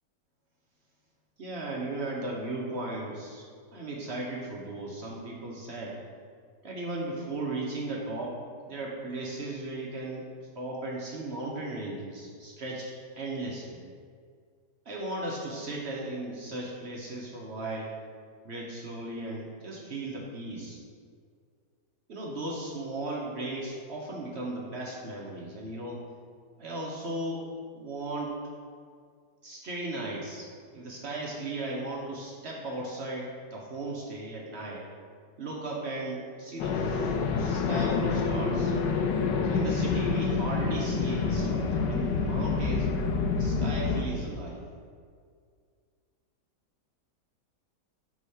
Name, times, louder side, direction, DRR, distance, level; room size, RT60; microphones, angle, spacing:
voice 1, 1.4-6.0 6.6-8.4 8.7-10.3 10.5-13.8 14.9-17.9 18.4-20.8 22.1-26.0 26.6-27.4 27.7-28.4 29.4-34.8 35.4-38.8 39.4-42.9 43.3-44.6, right 2 dB, 55° right, -3 dB, 0.8 m, -36 dB
sound 1, 36.6-44.0, left 4 dB, 85° left, 1.2 m, -27 dB
4.9 x 3.6 x 5.5 m, 2.1 s
omnidirectional pair, 1.9 m